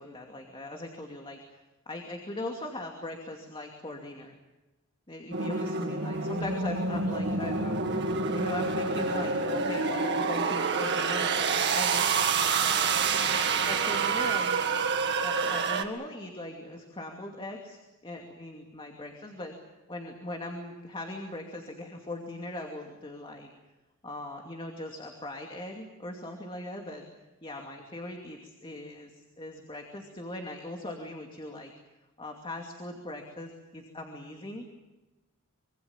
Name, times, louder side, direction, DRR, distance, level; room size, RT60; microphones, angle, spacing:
voice 1, 0.0-4.4 5.1-7.8 8.3-14.7 15.2-19.5 19.9-23.5 24.0-27.0 27.4-31.7 32.2-34.7, left 1 dB, 25° left, 2 dB, 2.6 m, -40 dB
sound 1, 5.3-15.8, right 5 dB, 55° right, 1.9 m, -27 dB
25.5 x 24.0 x 7.3 m, 1.1 s
head